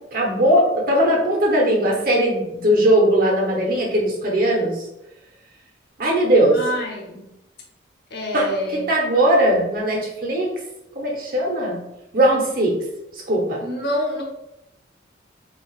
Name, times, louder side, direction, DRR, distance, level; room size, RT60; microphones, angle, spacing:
voice 1, 0.1-4.8 6.0-6.6 8.3-10.5 10.9-11.8 12.1-12.7 13.3-13.6, right 1 dB, 50° right, -1 dB, 0.9 m, -19 dB
voice 2, 6.5-7.3 8.1-8.8 13.6-14.2, left 1 dB, 60° left, 0 dB, 0.8 m, -26 dB
4.6 x 2.5 x 2.4 m, 0.89 s
head